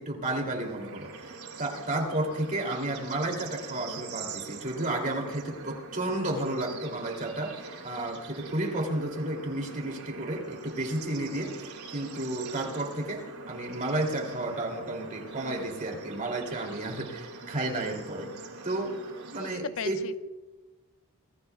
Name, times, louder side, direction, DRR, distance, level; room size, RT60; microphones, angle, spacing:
voice 1, 0.0-18.3 18.6-19.0 19.3-20.2, right 1 dB, 35° right, 1 dB, 2.9 m, -32 dB
Bird / Insect / Frog, 0.6-19.5, right 4 dB, 80° right, 3.3 m, -44 dB
voice 2, 19.3-20.2, left 5 dB, 65° left, 13 dB, 0.5 m, -37 dB
26.0 x 19.5 x 2.4 m, 1.2 s
head